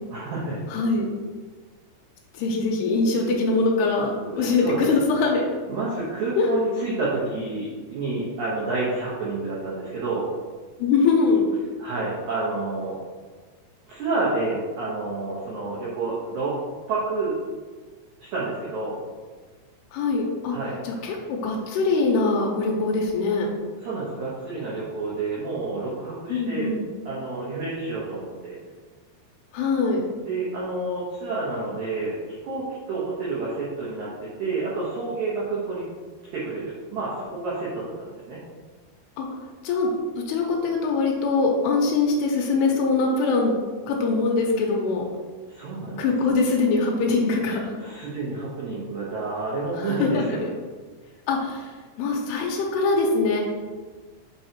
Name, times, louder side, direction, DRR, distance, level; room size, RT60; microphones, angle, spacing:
voice 1, 0.1-0.6 3.1-3.6 4.2-4.9 5.7-10.3 11.8-13.0 13.9-16.5 16.9-17.4 18.3-18.9 20.5-20.8 23.8-26.7 27.0-28.6 30.2-35.9 36.3-38.4 45.5-46.1 47.8-50.4, right 3 dB, 65° right, -7 dB, 1.9 m, -29 dB
voice 2, 0.7-1.1 2.4-5.4 6.4-6.5 10.8-11.5 19.9-20.6 20.8-23.5 26.3-26.8 29.5-30.0 39.2-39.3 39.6-39.9 40.3-43.5 43.9-45.0 46.0-47.8 50.0-50.3 51.3-51.6 52.0-53.4, left 3 dB, 90° left, -1 dB, 2.9 m, -22 dB
6.4 x 5.8 x 2.9 m, 1.4 s
omnidirectional pair, 4.7 m